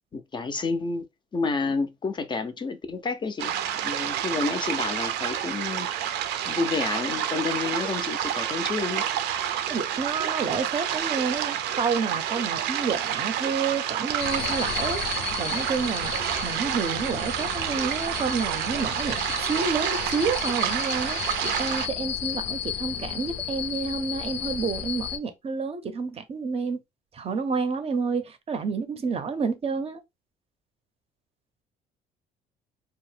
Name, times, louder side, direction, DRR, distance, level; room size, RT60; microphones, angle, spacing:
voice 1, 0.1-1.1 1.3-3.5 3.8-6.0 6.4-9.0, left 4 dB, 25° left, 0.4 m, -30 dB
sound 1, 3.4-21.9, right 10 dB, 80° right, 0.5 m, -29 dB
voice 2, 9.7-16.1 16.4-26.8 27.1-30.0, right 5 dB, 35° right, 0.5 m, -29 dB
sound 2, 14.2-25.2, left 9 dB, 80° left, 0.5 m, -34 dB
2.7 x 2.0 x 3.2 m
cardioid pair, 110°, 17 cm